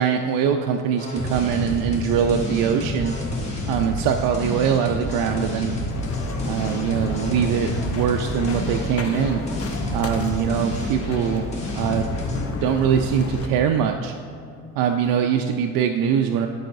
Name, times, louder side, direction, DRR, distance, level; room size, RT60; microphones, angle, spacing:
voice 1, 0.0-3.1 3.7-5.7 6.4-9.4 9.9-11.5 11.7-12.1 12.6-14.1 14.8-16.5, right 8 dB, 75° right, 5 dB, 0.5 m, -22 dB
sound 1, 1.0-12.4, left 1 dB, 20° left, 1.9 m, -29 dB
sound 2, 5.9-13.5, left 3 dB, 40° left, 0.8 m, -32 dB
14.0 x 4.8 x 2.6 m, 2.5 s
cardioid pair, 100°, 35 cm